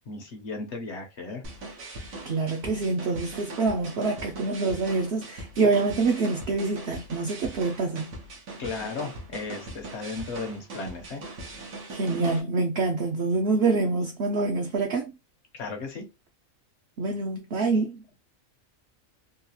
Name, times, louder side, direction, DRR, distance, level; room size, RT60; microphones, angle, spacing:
voice 1, 0.1-1.4 8.6-11.2 15.5-16.0, left 3 dB, 60° left, 1.0 m, -35 dB
sound 1, 1.4-12.4, right 2 dB, 85° right, 1.4 m, -41 dB
voice 2, 2.3-8.1 11.9-15.1 17.0-18.0, right 3 dB, 60° right, 0.8 m, -26 dB
3.8 x 2.3 x 2.7 m
omnidirectional pair, 1.4 m